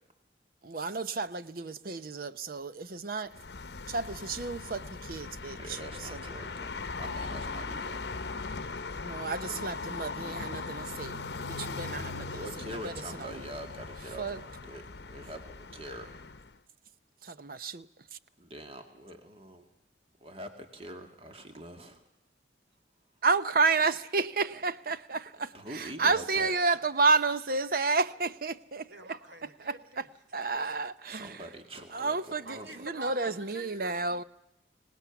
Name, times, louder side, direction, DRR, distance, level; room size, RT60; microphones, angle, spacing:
voice 1, 0.7-3.3 3.9-4.8 5.1-5.6 9.0-12.2 14.2-14.4 17.4-17.8 23.2-25.5 26.0-28.8 29.7-29.8 30.3-31.3 31.9-32.4 32.8-34.2, right 4 dB, 50° right, 0.8 m, -30 dB
sound 1, 3.3-16.6, left 4 dB, 65° left, 0.8 m, -39 dB
voice 2, 5.5-8.0 12.3-16.2 18.4-19.7 20.2-22.0 24.5-24.6 25.4-26.5 31.0-32.9, right 1 dB, 30° right, 2.1 m, -44 dB
voice 3, 28.9-30.1 32.4-34.0, right 1 dB, 75° right, 3.1 m, -45 dB
25.0 x 19.0 x 7.1 m
head